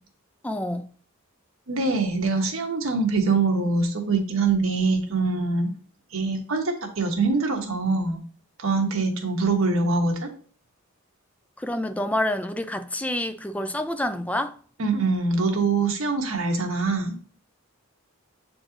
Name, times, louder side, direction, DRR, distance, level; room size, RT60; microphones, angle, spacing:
voice 1, 0.4-0.9 11.6-14.6, left 1 dB, 5° left, 0.4 m, -28 dB
voice 2, 1.7-5.7 6.1-8.2 8.6-10.3 14.8-17.2, right 3 dB, 75° right, 1.3 m, -24 dB
7.7 x 4.3 x 2.9 m
head